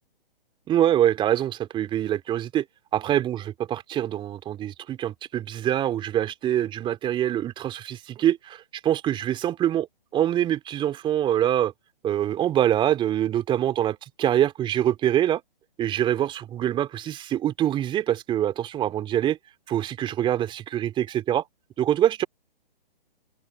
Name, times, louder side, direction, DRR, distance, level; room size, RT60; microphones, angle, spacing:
voice 1, 0.7-2.6 2.9-9.9 10.1-11.7 12.0-15.4 15.8-19.4 19.7-21.5 21.8-22.3, right 11 dB, 15° right, 2.9 m, -24 dB
open air
figure-of-eight pair, 130°, 29 cm